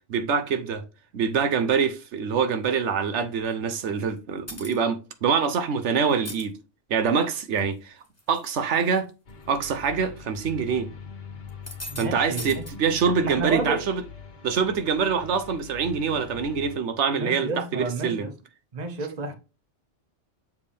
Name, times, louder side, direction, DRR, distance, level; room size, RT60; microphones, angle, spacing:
voice 1, 0.1-0.8 1.1-6.5 6.9-8.0 8.3-9.1 9.5-10.9 12.0-14.0 14.4-18.3, right 6 dB, 85° right, 1.1 m, -25 dB
sound 1, 4.5-4.8 6.1-6.4 7.1-7.6 8.0-8.5 8.8-8.9 9.7-9.9 11.5-12.1 12.4-12.7, left 1 dB, 15° left, 1.6 m, -38 dB
sound 2, 9.3-16.8, left 6 dB, 60° left, 1.3 m, -42 dB
voice 2, 11.9-12.6 13.2-13.8 17.2-18.3 18.7-19.3, right 3 dB, 40° right, 1.1 m, -30 dB
7.2 x 4.8 x 3.4 m
omnidirectional pair, 1.2 m